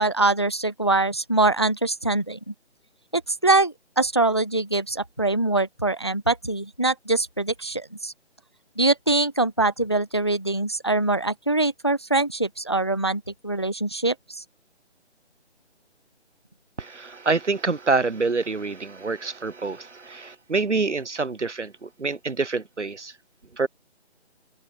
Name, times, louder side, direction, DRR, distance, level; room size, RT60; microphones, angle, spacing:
voice 1, 0.0-2.5 3.1-8.1 8.8-14.2, right 2 dB, 25° left, 0.4 m, -23 dB
voice 2, 16.8-23.1 23.6-23.7, right 4 dB, 90° right, 1.3 m, -26 dB
open air
figure-of-eight pair, 150°, 35 cm